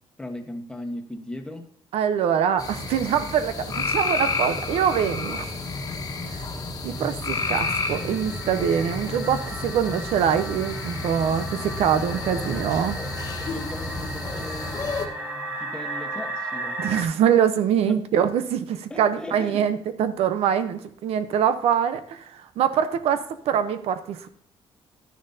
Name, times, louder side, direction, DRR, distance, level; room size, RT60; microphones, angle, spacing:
voice 1, 0.2-1.7 13.4-16.8 17.8-18.0 18.9-19.6, left 1 dB, 10° left, 3 dB, 1.2 m, -37 dB
voice 2, 1.9-5.5 6.3-6.5 6.8-13.0 16.8-24.3, right 8 dB, 85° right, 10 dB, 0.8 m, -24 dB
sound 1, 2.6-15.1, left 3 dB, 40° left, 1.3 m, -30 dB
sound 2, 7.0-17.0, right 1 dB, 25° right, 3.0 m, -36 dB
12.0 x 10.0 x 2.7 m, 0.63 s
cardioid pair, 155°, 10 cm